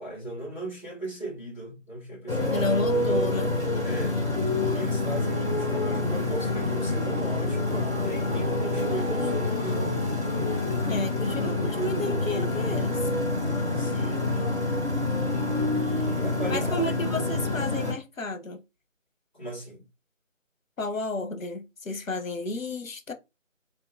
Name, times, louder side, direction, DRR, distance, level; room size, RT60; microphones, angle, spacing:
voice 1, 0.0-2.7 3.8-4.2 4.7-10.0 13.7-14.3 15.7-16.9 19.3-19.8, right 1 dB, 35° left, 2.1 m, -38 dB
Motorcycle, 2.3-17.9, left 2 dB, 5° left, 2.0 m, -27 dB
voice 2, 2.5-3.6 10.9-13.0 16.5-18.6 20.8-23.1, left 2 dB, 85° left, 0.8 m, -32 dB
3.6 x 2.6 x 2.4 m
figure-of-eight pair, 175°, 39 cm